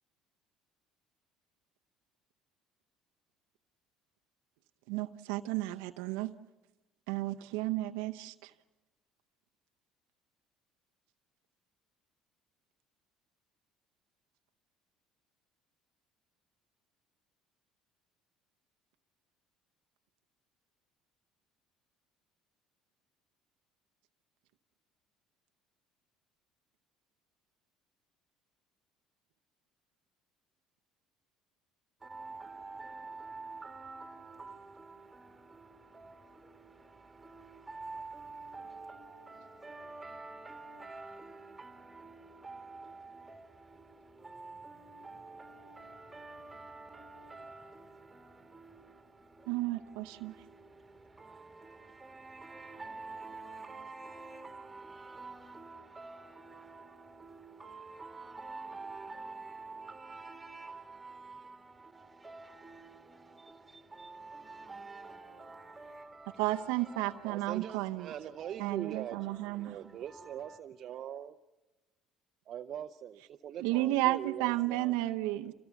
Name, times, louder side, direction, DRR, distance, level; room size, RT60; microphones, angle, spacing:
voice 1, 4.9-6.3 7.1-8.5 49.5-50.3 66.4-68.1 68.6-69.8 73.6-75.5, right 17 dB, 90° right, 0.7 m, -33 dB
voice 2, 32.0-70.6, right 3 dB, 15° right, 2.2 m, -48 dB
voice 3, 67.2-71.4 72.5-75.0, right 10 dB, 55° right, 0.7 m, -42 dB
27.0 x 18.5 x 7.1 m
supercardioid pair, 100°, 0 cm